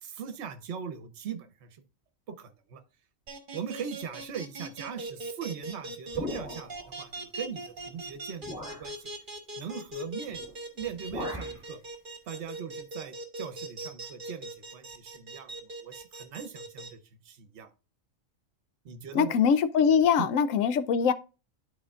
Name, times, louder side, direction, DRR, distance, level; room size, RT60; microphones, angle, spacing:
voice 1, 0.0-1.8 2.3-2.8 3.5-9.1 9.6-10.5 10.7-11.8 12.3-17.0 17.2-17.7 18.8-19.3 20.2-20.3, right 7 dB, 55° right, 1.1 m, -40 dB
sound 1, 3.3-16.9, right 1 dB, 40° right, 1.2 m, -40 dB
sound 2, 6.1-6.9 7.8-7.9 8.4-8.9 10.3-10.5 10.8-11.6, left 1 dB, 5° right, 2.4 m, -38 dB
voice 2, 19.1-21.1, left 7 dB, 75° left, 0.9 m, -23 dB
12.5 x 4.3 x 2.4 m
omnidirectional pair, 1.4 m